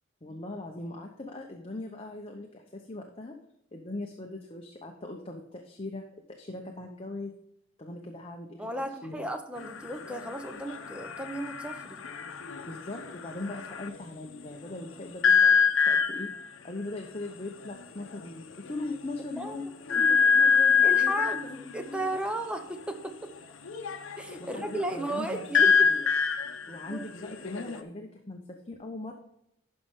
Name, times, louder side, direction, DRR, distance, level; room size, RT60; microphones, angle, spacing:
voice 1, 0.2-3.4 3.7-7.4 7.8-8.6 8.9-9.3 12.7-22.1 24.4-26.1 26.7-29.1, left 2 dB, 30° left, 2 dB, 0.8 m, -40 dB
voice 2, 8.6-12.0 19.3-19.6 19.9-20.2 20.8-23.3 24.2-25.9 26.9-27.1, right 1 dB, 5° right, 6 dB, 0.8 m, -35 dB
sound 1, 9.6-14.0 15.2-16.5 17.6-17.7 18.0-18.3 18.7-18.8 19.9-21.5 23.7-27.8, left 6 dB, 80° left, 0.8 m, -25 dB
11.5 x 5.4 x 3.6 m, 0.77 s
head